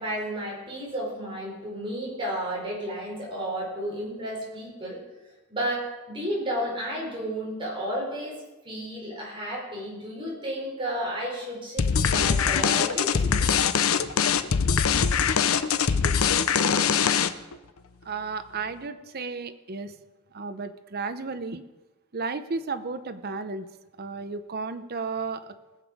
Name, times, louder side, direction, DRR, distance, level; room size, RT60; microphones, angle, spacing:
voice 1, 0.0-5.0 5.5-13.3 14.0-14.4, equal, 25° right, -4 dB, 4.3 m, -32 dB
sound 1, 11.8-17.5, left 6 dB, 70° left, 0.6 m, -22 dB
voice 2, 18.0-20.0 20.3-21.6 22.1-23.7 24.0-25.5, right 4 dB, 45° right, 10 dB, 0.7 m, -33 dB
19.5 x 7.1 x 4.9 m, 1.1 s
head